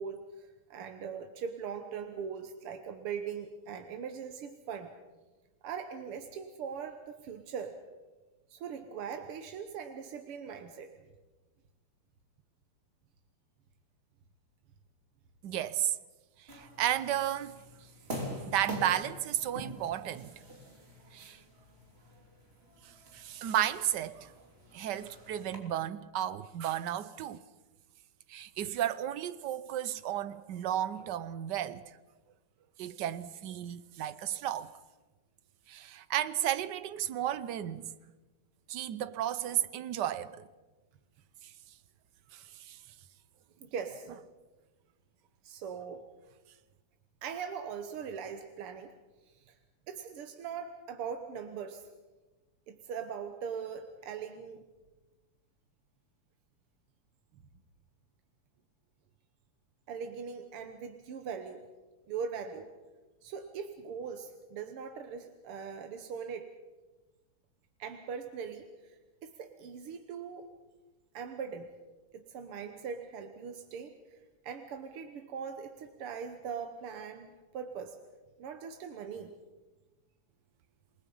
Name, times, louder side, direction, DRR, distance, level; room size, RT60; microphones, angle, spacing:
voice 1, 0.0-4.9 5.6-7.8 8.5-10.9 43.6-44.1 45.4-46.1 47.2-48.9 49.5-49.6 49.9-51.9 52.7-54.6 59.9-61.6 62.1-62.7 63.2-66.5 67.8-69.0 69.2-70.5 71.1-71.7 72.1-73.9 74.4-78.0 78.4-79.3, right 6 dB, 85° right, 2.1 m, -40 dB
voice 2, 15.4-16.0 16.4-17.5 18.5-20.3 21.1-21.4 22.8-24.3 24.7-27.4 28.3-31.8 32.8-34.7 35.7-37.9 38.7-40.5 41.4-41.5 42.3-42.8, right 11 dB, 65° right, 1.3 m, -33 dB
sound 1, 16.5-25.6, equal, 25° right, 3.4 m, -45 dB
28.5 x 19.5 x 5.5 m
omnidirectional pair, 2.4 m